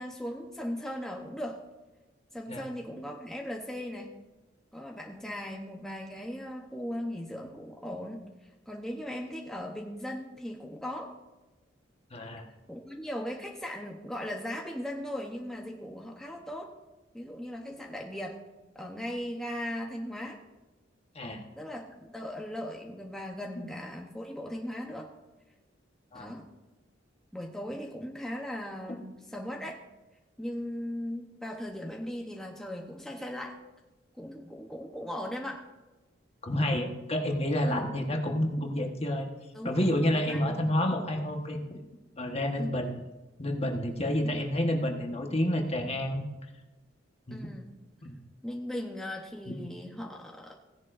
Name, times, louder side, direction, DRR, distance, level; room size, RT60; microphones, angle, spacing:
voice 1, 0.0-1.6 2.3-4.1 4.7-11.1 12.7-16.7 17.1-18.4 18.7-20.4 21.6-25.1 26.1-26.5 27.3-29.8 30.4-33.6 34.2-35.6 37.7-37.8 39.5-39.9 40.2-40.7 42.6-42.8 44.2-44.4 47.3-47.7 48.4-50.5, left 1 dB, 5° left, 0 dB, 0.8 m, -38 dB
voice 2, 12.1-12.5 21.1-21.4 26.1-26.3 36.4-39.3 39.6-41.6 42.1-42.9 43.4-46.3 47.3-47.5 48.0-48.1 49.5-49.6, left 1 dB, 35° left, 3 dB, 1.2 m, -29 dB
16.5 x 10.5 x 2.5 m, 1.1 s
head